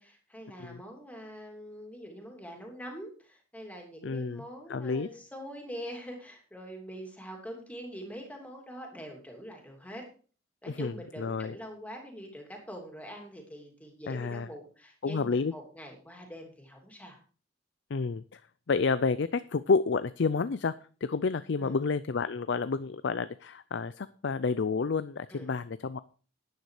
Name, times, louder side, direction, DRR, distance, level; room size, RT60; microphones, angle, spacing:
voice 1, 0.0-10.1 10.6-17.2 21.6-21.8 25.3-25.5, equal, 5° left, 1 dB, 3.0 m, -44 dB
voice 2, 4.0-5.1 10.7-11.6 14.1-14.5 15.0-15.5 17.9-18.4 18.7-20.7 21.0-26.0, left 4 dB, 60° left, 14 dB, 0.5 m, -30 dB
11.0 x 9.5 x 4.9 m, 0.40 s
head